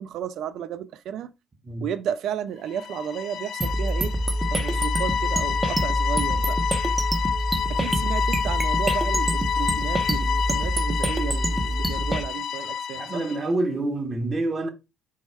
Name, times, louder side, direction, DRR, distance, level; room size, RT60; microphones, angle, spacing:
voice 1, 0.0-1.3 1.8-4.1 4.5-6.6 7.7-13.2, right 9 dB, 65° right, 0.3 m, -33 dB
sound 1, 2.7-13.5, left 7 dB, 55° left, 0.6 m, -29 dB
sound 2, 3.6-12.2, right 1 dB, 15° right, 0.9 m, -26 dB
voice 2, 12.9-14.7, right 2 dB, 35° right, 1.3 m, -27 dB
4.6 x 4.1 x 2.2 m
hypercardioid pair, 60°, 0 cm